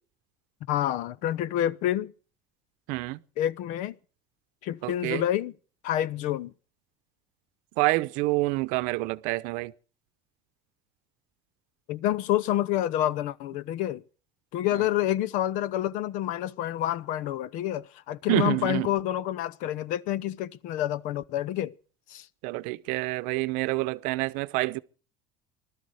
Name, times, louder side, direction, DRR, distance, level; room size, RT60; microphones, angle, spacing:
voice 1, 0.7-2.1 3.4-4.0 4.6-5.5 5.8-6.5 11.9-14.0 14.5-21.7 22.1-22.3, left 12 dB, 65° left, 0.8 m, -28 dB
voice 2, 2.9-3.2 4.8-5.2 7.8-9.7 18.3-18.9 22.4-24.8, right 21 dB, 75° right, 0.8 m, -27 dB
20.0 x 12.5 x 4.9 m
supercardioid pair, 120°, 14 cm